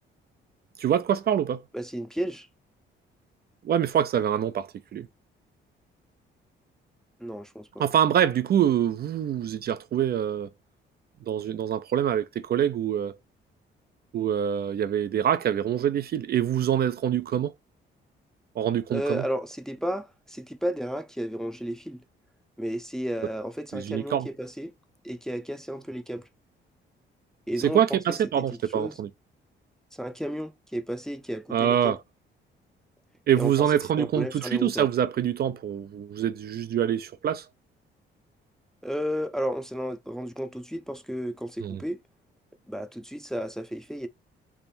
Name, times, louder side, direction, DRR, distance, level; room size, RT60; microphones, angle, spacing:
voice 1, 0.8-1.6 3.6-5.1 7.8-10.5 11.2-13.2 14.1-17.5 18.6-19.2 23.7-24.3 27.6-29.1 31.5-32.0 33.3-37.5 41.6-41.8, right 9 dB, 50° right, 0.4 m, -25 dB
voice 2, 1.7-2.5 7.2-7.9 18.9-22.0 22.6-24.7 25.0-26.3 27.5-28.4 28.7-29.0 29.9-32.0 33.4-33.7 34.0-34.9 38.8-42.0 42.7-44.1, equal, ahead, 0.5 m, -33 dB
3.5 x 2.5 x 4.2 m
cardioid pair, 90°, 20 cm